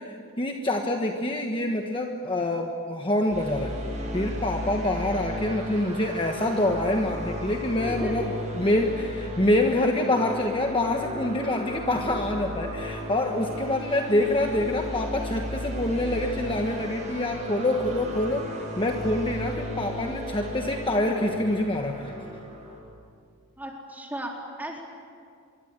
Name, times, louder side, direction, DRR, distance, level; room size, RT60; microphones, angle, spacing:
voice 1, 0.0-3.8 4.1-8.3 8.6-18.5 18.8-22.1, left 1 dB, 25° left, 3 dB, 1.3 m, -26 dB
sound 1, 3.3-22.8, left 1 dB, 35° right, 7.6 m, -35 dB
voice 2, 7.8-8.5 23.6-24.8, right 1 dB, 10° right, -1 dB, 4.0 m, -36 dB
26.0 x 23.0 x 9.1 m, 2.3 s
head